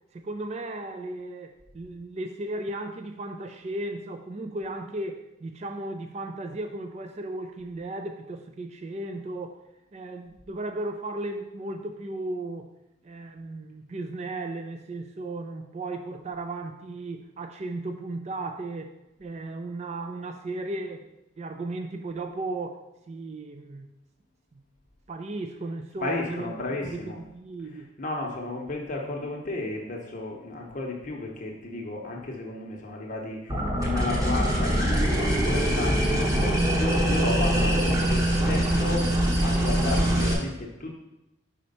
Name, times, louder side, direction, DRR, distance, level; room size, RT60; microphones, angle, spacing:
voice 1, 0.1-9.6 9.9-12.7 13.0-18.9 19.2-21.1 21.4-23.9 25.1-27.9, right 2 dB, 35° right, 6 dB, 0.3 m, -35 dB
voice 2, 26.0-27.2 27.6-40.9, left 2 dB, 40° left, -1 dB, 0.8 m, -33 dB
sound 1, 33.5-40.3, right 1 dB, 15° right, 0.9 m, -23 dB
5.0 x 4.3 x 5.3 m, 0.93 s
head